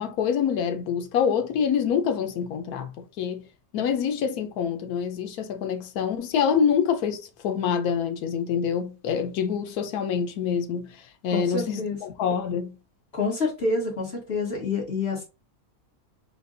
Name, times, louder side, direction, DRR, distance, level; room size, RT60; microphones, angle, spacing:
voice 1, 0.0-3.5 3.7-12.8, left 7 dB, 90° left, 1.1 m, -26 dB
voice 2, 11.3-12.0 13.1-15.2, left 3 dB, 45° left, 1.6 m, -27 dB
5.1 x 2.3 x 2.6 m
omnidirectional pair, 1.5 m